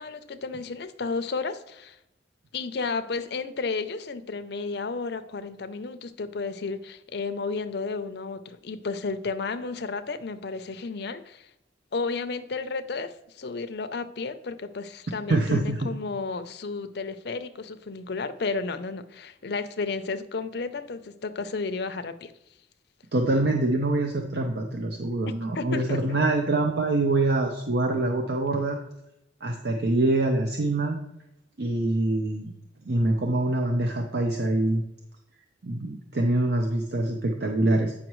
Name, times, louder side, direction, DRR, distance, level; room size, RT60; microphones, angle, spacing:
voice 1, 0.0-2.0 2.5-11.5 11.9-22.3 25.5-26.0, left 4 dB, 60° left, 10 dB, 0.6 m, -32 dB
voice 2, 15.3-15.9 23.1-28.8 29.4-31.0 31.6-32.5 32.8-34.8 35.6-37.9, right 2 dB, 60° right, 3 dB, 0.7 m, -25 dB
8.8 x 5.6 x 3.1 m, 0.86 s
head